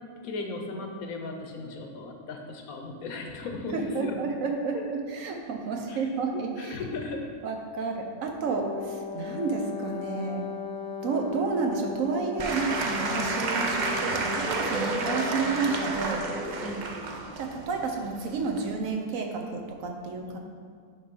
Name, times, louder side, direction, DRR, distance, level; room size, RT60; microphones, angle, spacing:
voice 1, 0.2-4.2 4.7-4.8 5.9-7.2 13.1-13.3 16.6-16.9 20.2-20.4, left 3 dB, 80° left, 3 dB, 1.3 m, -37 dB
voice 2, 3.7-6.7 7.4-10.4 11.0-16.2 17.4-20.4, right 4 dB, 70° right, 3 dB, 1.2 m, -31 dB
Wind instrument woodwind instrument, 8.4-16.6, left 6 dB, 60° left, 0.9 m, -38 dB
Applause / Crowd, 12.4-18.7, right 3 dB, 55° right, 0.5 m, -31 dB
9.5 x 3.4 x 5.3 m, 2.1 s
omnidirectional pair, 1.5 m